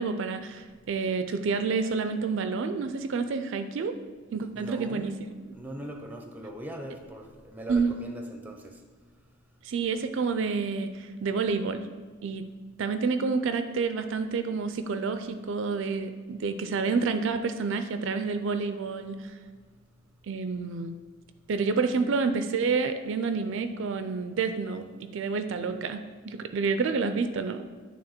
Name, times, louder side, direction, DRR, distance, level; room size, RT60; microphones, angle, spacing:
voice 1, 0.0-4.0 4.3-5.1 7.7-7.9 9.6-11.9 12.2-12.4 12.8-19.3 20.3-20.9 21.5-27.6, right 4 dB, 65° right, 9 dB, 0.4 m, -29 dB
voice 2, 4.5-5.1 5.5-8.7, right 1 dB, 10° right, 3 dB, 0.6 m, -40 dB
8.8 x 3.4 x 4.3 m, 1.4 s
head